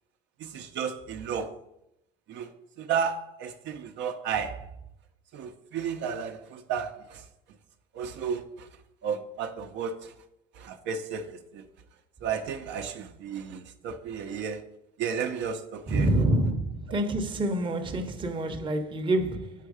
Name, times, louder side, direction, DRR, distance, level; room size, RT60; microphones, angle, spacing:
voice 1, 0.4-1.5 2.3-4.7 5.3-7.3 7.9-8.7 9.0-10.1 10.5-11.6 12.2-14.7 15.0-16.1 16.9-17.0, right 7 dB, 60° right, 0.7 m, -33 dB
voice 2, 15.9-19.5, right 1 dB, 25° right, 0.8 m, -27 dB
7.4 x 4.5 x 4.9 m
cardioid pair, 130°, 21 cm